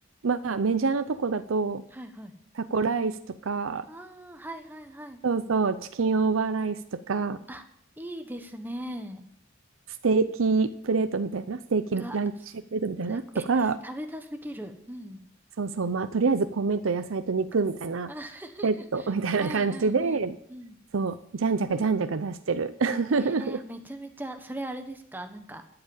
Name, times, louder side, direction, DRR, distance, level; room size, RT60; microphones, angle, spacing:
voice 1, 0.2-1.8 2.7-3.2 3.4-3.9 5.2-7.4 10.0-12.3 12.7-13.2 13.5-13.8 15.6-18.1 18.6-20.4 20.9-23.6, right 4 dB, 85° right, 10 dB, 0.6 m, -26 dB
voice 2, 1.9-2.3 3.9-5.2 7.5-7.6 8.0-9.2 12.0-12.2 13.1-15.2 18.1-19.1 19.4-20.8 23.1-25.6, right 1 dB, 10° right, 6 dB, 1.2 m, -39 dB
12.5 x 7.9 x 7.2 m, 0.68 s
head